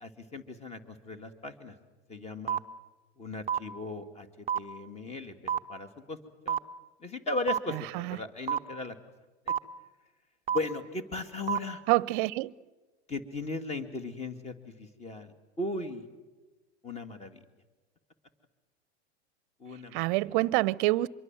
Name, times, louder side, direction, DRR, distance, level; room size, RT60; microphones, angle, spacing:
voice 1, 0.0-1.8 2.1-2.6 3.2-6.2 6.4-6.6 7.0-9.0 9.5-9.6 10.5-11.8 13.1-16.0 16.8-17.4 19.6-20.2, left 2 dB, 20° left, 2.5 m, -37 dB
sound 1, 2.5-2.6 3.5-3.6 4.5-4.6 5.5-5.6 6.5-6.6 7.5-7.6 8.5-8.6 9.5-9.6 10.5-10.6 11.5-11.6, right 8 dB, 20° right, 0.7 m, -27 dB
voice 2, 7.7-8.2 11.9-12.5 19.9-21.1, right 19 dB, 50° right, 0.8 m, -27 dB
25.5 x 23.0 x 7.7 m
hypercardioid pair, 115°, 33 cm